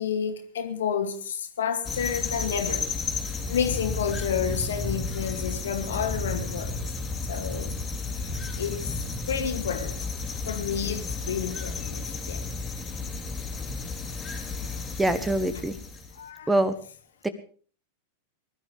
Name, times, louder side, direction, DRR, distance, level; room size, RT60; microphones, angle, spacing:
voice 1, 0.0-2.9 3.5-6.8 7.3-7.8 8.6-8.9 9.3-10.0 10.5-12.4 14.6-14.8 16.2-16.5, left 7 dB, 65° left, 2.1 m, -30 dB
sound 1, 1.8-16.2, left 3 dB, 20° left, 3.3 m, -32 dB
voice 2, 15.0-15.8 16.5-16.7 17.2-17.3, right 1 dB, 10° right, 1.3 m, -24 dB
21.0 x 12.0 x 5.1 m
figure-of-eight pair, 90°, 0 cm